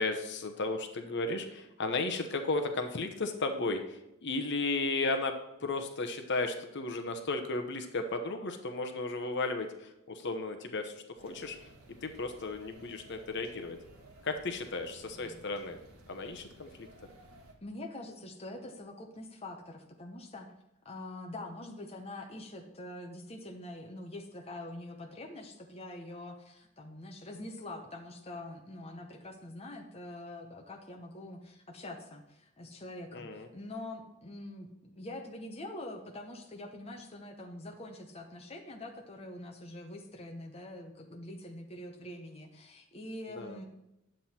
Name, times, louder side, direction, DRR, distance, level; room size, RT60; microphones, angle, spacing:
voice 1, 0.0-5.3 5.6-11.7 12.0-13.8 14.2-15.8 16.1-16.9 33.1-33.5 43.4-43.6, left 3 dB, 55° left, 6 dB, 0.9 m, -34 dB
sound 1, 11.2-17.5, right 1 dB, 80° right, 1.6 m, -56 dB
voice 2, 17.6-20.5 20.8-43.6, left 1 dB, 30° left, 2 dB, 0.9 m, -44 dB
10.0 x 7.5 x 4.3 m, 0.89 s
head